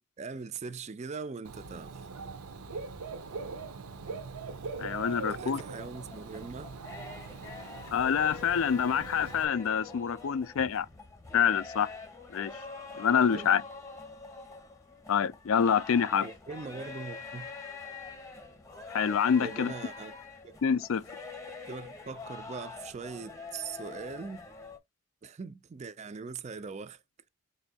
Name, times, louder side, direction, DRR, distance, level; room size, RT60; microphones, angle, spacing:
voice 1, 0.2-2.0 5.1-6.7 13.3-13.5 16.2-17.5 19.4-20.1 20.4-20.6 21.7-24.5 25.2-27.0, right 4 dB, 30° right, 0.4 m, -41 dB
Dog / Bird, 1.4-9.4, right 4 dB, 85° right, 0.7 m, -42 dB
voice 2, 4.8-5.6 7.9-10.9 11.3-11.9 12.3-12.6 13.0-13.6 15.1-16.3 18.9-19.7 20.6-21.0, left 7 dB, 70° left, 0.4 m, -26 dB
sound 1, 5.7-24.8, left 4 dB, 15° left, 0.8 m, -45 dB
4.2 x 2.6 x 4.0 m
head